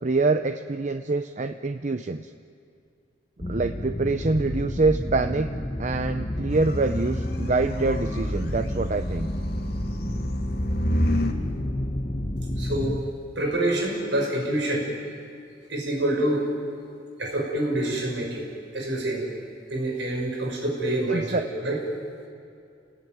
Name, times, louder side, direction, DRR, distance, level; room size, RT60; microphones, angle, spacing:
voice 1, 0.0-2.3 3.5-5.5 5.8-9.3 21.1-21.5, right 3 dB, 40° right, 9 dB, 0.6 m, -25 dB
sound 1, 3.4-13.0, left 1 dB, 30° left, 1.3 m, -30 dB
sound 2, 6.5-11.4, left 1 dB, 55° left, 2.2 m, -31 dB
voice 2, 12.6-13.0 13.4-14.9 15.7-16.5 17.2-18.4 18.7-19.3 19.7-21.8, right 1 dB, 75° right, 1 dB, 5.8 m, -26 dB
29.0 x 18.5 x 9.4 m, 2.4 s
head